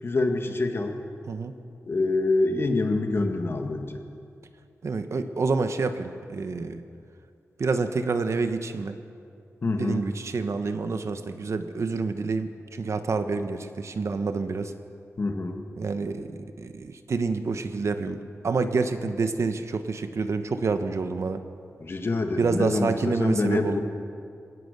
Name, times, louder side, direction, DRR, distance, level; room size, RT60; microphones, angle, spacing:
voice 1, 0.0-1.0 1.9-4.0 9.6-10.1 15.2-15.6 21.8-23.8, left 2 dB, 45° left, 5 dB, 1.8 m, -26 dB
voice 2, 4.8-6.8 7.6-9.0 9.8-14.7 15.8-21.4 22.4-23.8, right 4 dB, 60° right, 9 dB, 1.1 m, -28 dB
22.0 x 17.5 x 6.7 m, 2.4 s
wide cardioid pair, 140°, 6 cm